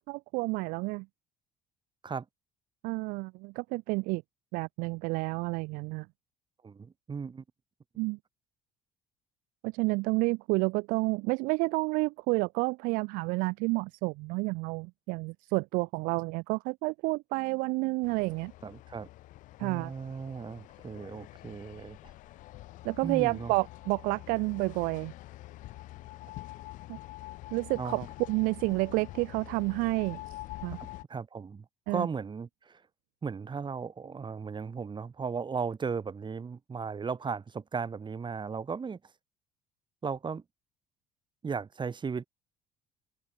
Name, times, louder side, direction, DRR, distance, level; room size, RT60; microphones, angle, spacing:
voice 1, 0.1-1.0 2.8-4.2 4.5-6.1 8.0-8.2 9.6-18.5 19.6-19.9 22.8-25.1 26.9-27.0 27.5-30.2 30.6-30.8 31.9-32.1, right 26 dB, 60° right, 1.4 m, -30 dB
voice 2, 6.6-7.4 18.6-19.1 19.6-22.1 23.0-23.5 27.8-28.0 30.8-32.8 33.2-39.0 40.0-40.4 41.4-42.3, right 5 dB, 30° right, 4.2 m, -36 dB
sound 1, 18.0-31.0, left 17 dB, 55° left, 2.1 m, -46 dB
figure-of-eight pair, 55°, 15 cm